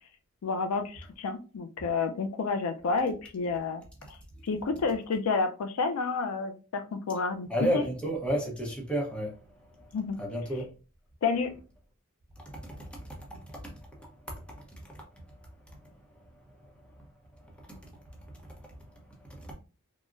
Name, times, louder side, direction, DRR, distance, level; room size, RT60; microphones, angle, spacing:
voice 1, 0.4-3.8 4.4-7.5 7.7-7.8 9.9-10.2 11.2-11.5, left 4 dB, 80° left, 0.4 m, -30 dB
voice 2, 7.5-9.4 10.2-10.7 12.5-12.9 13.3-13.6 14.3-14.4 14.7-14.8 17.7-17.8 19.4-19.5, equal, 5° left, 0.7 m, -31 dB
3.7 x 2.0 x 2.4 m
head